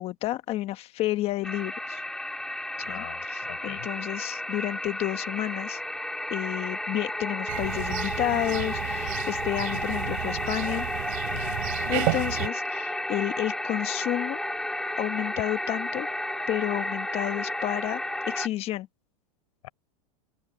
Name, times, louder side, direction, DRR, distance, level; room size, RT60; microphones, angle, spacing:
voice 1, 0.0-2.0 2.8-5.8 6.3-10.9 11.9-14.4 15.0-16.1 16.5-18.0 18.3-18.9, left 15 dB, 30° left, 1.2 m, -31 dB
sound 1, 1.4-18.5, left 1 dB, 5° left, 3.4 m, -32 dB
voice 2, 2.8-3.9 11.3-11.8 19.6-19.7, left 17 dB, 70° left, 6.0 m, -43 dB
sound 2, 7.5-12.5, right 21 dB, 60° right, 3.3 m, -32 dB
open air
supercardioid pair, 150°, 19 cm